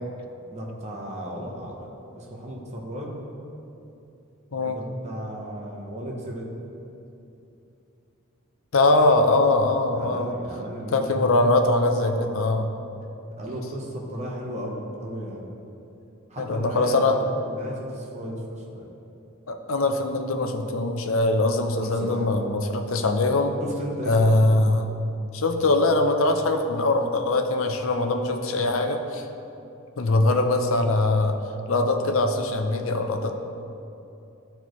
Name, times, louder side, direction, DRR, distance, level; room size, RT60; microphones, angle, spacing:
voice 1, 0.5-3.2 4.6-6.5 9.9-11.2 11.9-12.3 13.4-15.5 16.3-17.2 17.5-18.9 21.8-22.3 23.6-24.5, equal, 35° right, -2 dB, 0.9 m, -35 dB
voice 2, 8.7-10.3 10.9-12.7 16.4-17.2 19.5-23.5 24.0-24.9 25.3-29.3 30.0-31.4 31.7-33.3, left 2 dB, 65° left, 5 dB, 0.6 m, -22 dB
12.0 x 4.4 x 3.1 m, 2.8 s
head